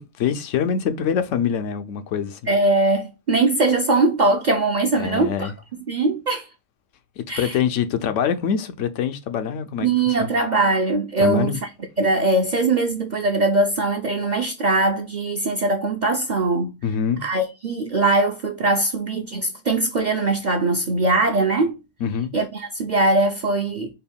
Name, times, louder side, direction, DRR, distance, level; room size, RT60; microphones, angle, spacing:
voice 1, 0.0-2.4 5.0-5.5 7.2-10.3 11.2-11.6 16.8-17.2 22.0-22.3, left 7 dB, 90° left, 1.0 m, -24 dB
voice 2, 2.5-5.5 5.9-6.5 7.3-7.5 9.8-11.6 12.0-16.7 17.2-21.8 22.3-23.9, right 2 dB, 55° right, 0.5 m, -21 dB
4.4 x 2.2 x 3.5 m
omnidirectional pair, 1.2 m